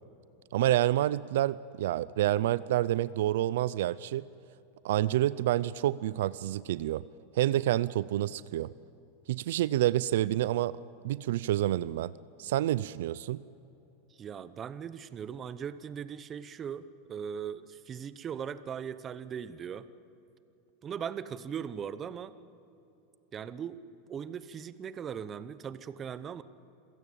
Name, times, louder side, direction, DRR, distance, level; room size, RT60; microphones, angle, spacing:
voice 1, 0.5-4.3 4.8-7.0 7.3-8.7 9.3-10.7 11.0-12.1 12.4-13.4, right 14 dB, 75° right, 18 dB, 0.5 m, -28 dB
voice 2, 14.2-19.9 20.8-22.4 23.3-26.4, right 8 dB, 25° right, 15 dB, 0.9 m, -39 dB
27.5 x 16.5 x 8.6 m, 2.9 s
supercardioid pair, 135°, 0 cm